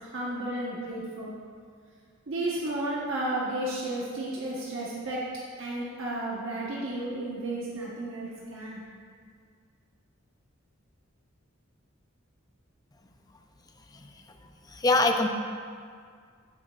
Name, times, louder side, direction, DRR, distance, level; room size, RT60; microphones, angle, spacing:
voice 1, 0.0-1.3 2.3-5.2 5.6-8.8, right 1 dB, 65° right, -6 dB, 1.1 m, -33 dB
voice 2, 14.7-15.3, left 2 dB, 20° left, 5 dB, 0.5 m, -24 dB
15.5 x 6.0 x 2.4 m, 2.1 s
head